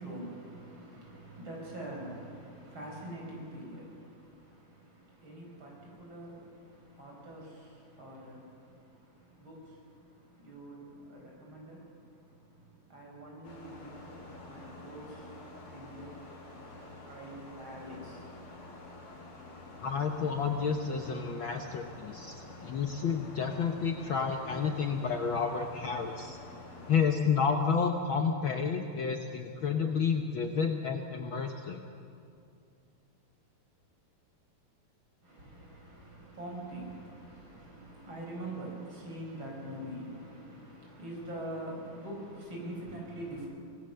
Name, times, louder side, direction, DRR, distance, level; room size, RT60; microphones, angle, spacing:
voice 1, 0.0-16.0 17.1-18.3 35.2-43.5, right 1 dB, 35° right, -2 dB, 5.9 m, -45 dB
sound 1, 13.4-27.0, left 2 dB, 40° left, 4.0 m, -48 dB
voice 2, 19.8-22.4 22.6-26.4 26.9-31.8, left 6 dB, 90° left, 4 dB, 1.1 m, -30 dB
24.5 x 19.0 x 6.8 m, 2.5 s
omnidirectional pair, 3.7 m